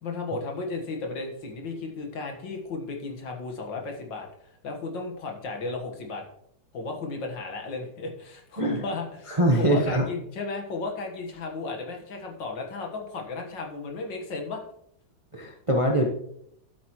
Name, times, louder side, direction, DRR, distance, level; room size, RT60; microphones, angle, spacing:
voice 1, 0.0-6.2 6.7-14.6, left 3 dB, 65° left, 2 dB, 2.1 m, -34 dB
voice 2, 9.3-10.1 15.3-16.0, right 1 dB, 30° right, 1 dB, 0.6 m, -23 dB
12.0 x 8.2 x 3.1 m, 0.72 s
omnidirectional pair, 2.1 m